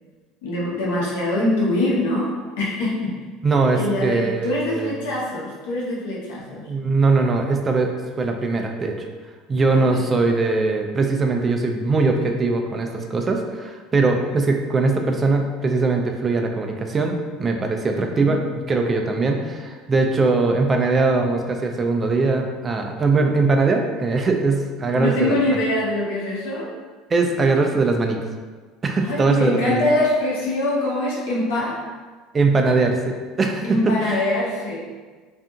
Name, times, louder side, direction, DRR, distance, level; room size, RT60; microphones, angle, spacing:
voice 1, 0.4-3.2 3.7-6.6 9.7-10.0 17.9-18.4 24.9-26.7 29.0-31.7 33.6-34.9, left 1 dB, 85° left, -5 dB, 0.8 m, -23 dB
voice 2, 3.4-4.9 6.7-7.9 8.2-9.1 9.5-18.4 18.7-25.4 27.1-28.2 28.8-29.8 32.3-34.2, right 3 dB, 25° right, 3 dB, 0.3 m, -21 dB
2.7 x 2.4 x 2.3 m, 1.4 s
supercardioid pair, 105°, 0 cm